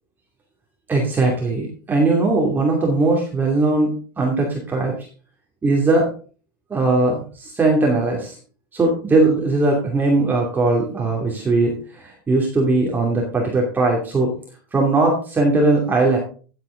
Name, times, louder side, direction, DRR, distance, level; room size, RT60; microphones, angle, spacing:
voice 1, 0.9-5.0 5.6-6.1 6.7-8.4 8.7-14.3 14.7-16.2, right 2 dB, 15° right, -1 dB, 2.6 m, -19 dB
14.0 x 7.8 x 3.8 m, 0.39 s
supercardioid pair, 130°, 12 cm